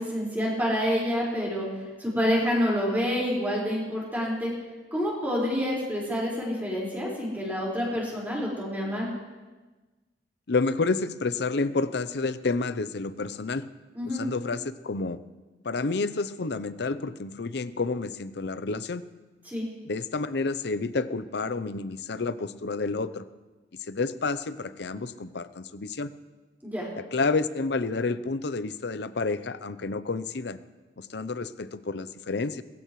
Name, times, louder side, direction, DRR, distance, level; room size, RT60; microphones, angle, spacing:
voice 1, 0.0-1.7 2.0-4.5 4.9-9.1 13.9-14.3 19.4-19.7 26.6-26.9, equal, 10° right, -5 dB, 4.9 m, -28 dB
voice 2, 10.5-13.6 14.1-15.2 15.6-19.0 19.8-23.2 23.9-26.1 27.1-30.6 31.0-32.6, left 3 dB, 65° left, 13 dB, 0.7 m, -29 dB
22.0 x 15.0 x 3.2 m, 1.2 s
head